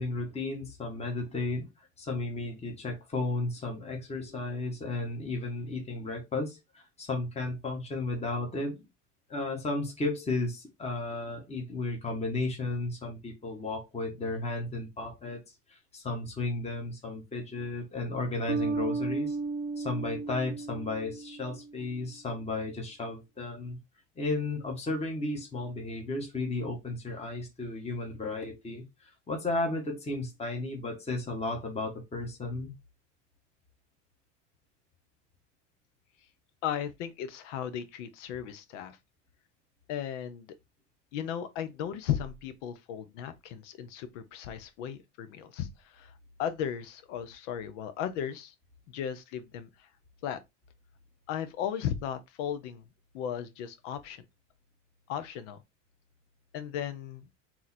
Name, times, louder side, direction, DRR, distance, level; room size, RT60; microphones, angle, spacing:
voice 1, 0.0-8.9 9.3-15.4 15.7-19.4 19.8-23.8 24.2-32.7, left 2 dB, 15° left, 1.4 m, -34 dB
sound 1, 18.5-21.8, right 4 dB, 35° right, 0.7 m, -34 dB
voice 2, 36.6-39.0 39.9-40.5 41.1-46.1 46.4-48.5 48.9-49.9 50.2-50.4 51.3-52.9 53.1-54.2 55.1-55.6 56.5-57.3, left 9 dB, 75° left, 0.9 m, -36 dB
3.8 x 3.0 x 4.2 m
supercardioid pair, 115°, 37 cm